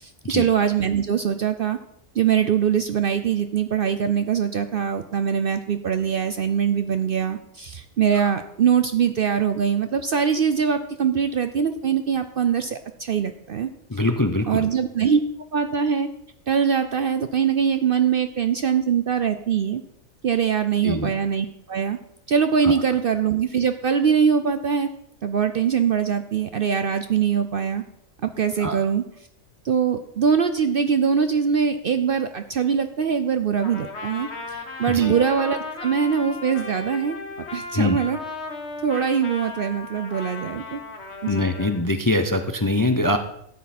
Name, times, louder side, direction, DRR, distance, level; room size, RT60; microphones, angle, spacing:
voice 1, 0.0-1.8 2.2-13.7 14.5-15.2 15.5-16.1 16.5-19.8 20.2-22.0 22.3-24.9 25.2-27.8 28.2-29.0 29.6-37.2 37.5-38.2 38.8-40.8 41.2-41.4, right 7 dB, 55° right, 9 dB, 0.7 m, -22 dB
voice 2, 13.9-14.6 20.8-21.1 22.6-22.8 28.6-28.8 34.9-35.1 37.7-38.0 41.3-43.2, left 2 dB, 20° left, 7 dB, 0.5 m, -23 dB
Trumpet, 33.6-41.8, left 3 dB, 55° left, 1.6 m, -36 dB
13.0 x 9.5 x 4.3 m, 0.73 s
omnidirectional pair, 1.4 m